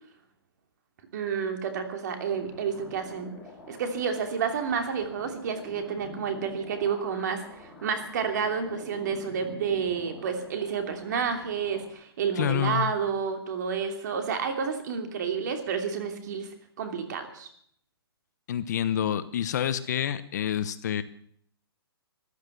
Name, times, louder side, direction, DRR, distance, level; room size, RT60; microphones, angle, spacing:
voice 1, 1.1-3.3 3.7-16.5 16.8-17.5, right 6 dB, 45° right, 6 dB, 2.9 m, -30 dB
sound 1, 2.3-11.9, left 1 dB, ahead, 3.5 m, -46 dB
voice 2, 12.4-12.9 18.5-21.0, left 10 dB, 45° left, 13 dB, 0.9 m, -28 dB
15.0 x 11.0 x 8.3 m, 0.65 s
hypercardioid pair, 165°, 13 cm